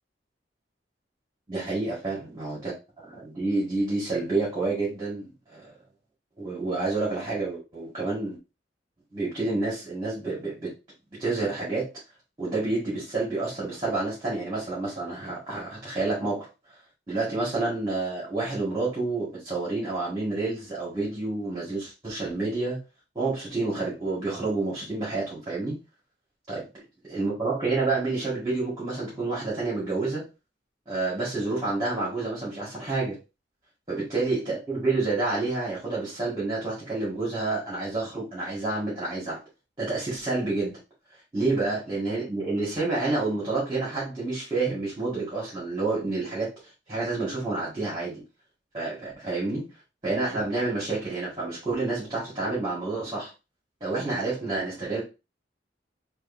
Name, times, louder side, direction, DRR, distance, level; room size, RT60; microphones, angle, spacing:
voice 1, 1.5-5.6 6.4-8.4 9.1-10.7 11.2-11.9 12.4-16.5 17.1-22.8 23.2-25.8 26.5-26.6 27.1-30.2 30.9-33.2 33.9-39.4 39.8-40.8 41.3-46.5 46.9-48.2 48.7-49.7 50.0-53.3 53.8-55.0, right 3 dB, 25° right, 1.9 m, -29 dB
6.4 x 2.7 x 2.7 m
head